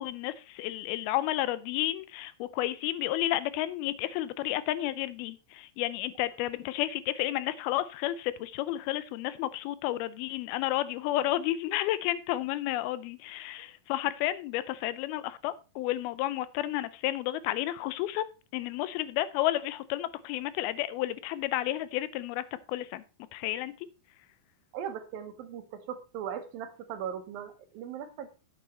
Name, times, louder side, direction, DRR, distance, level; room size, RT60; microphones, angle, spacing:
voice 1, 0.0-18.3 18.5-23.0 23.3-23.7, left 14 dB, 80° left, 2.4 m, -31 dB
voice 2, 24.7-28.3, right 9 dB, 75° right, 2.7 m, -39 dB
8.7 x 7.6 x 4.3 m
omnidirectional pair, 4.4 m